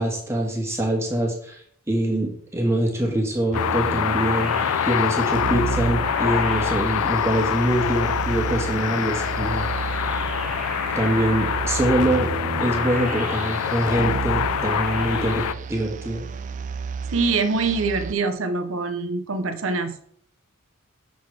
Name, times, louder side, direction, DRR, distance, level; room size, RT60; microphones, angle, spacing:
voice 1, 0.0-1.6 1.9-9.7 10.9-12.3 12.6-16.3, right 1 dB, 15° right, 0 dB, 1.5 m, -24 dB
sound 1, 3.5-15.5, left 9 dB, 80° left, 0.3 m, -25 dB
sound 2, 3.5-18.1, right 5 dB, 35° right, 0.4 m, -31 dB
voice 2, 17.1-20.1, right 4 dB, 65° right, 9 dB, 0.8 m, -24 dB
6.2 x 3.8 x 6.0 m, 0.64 s
head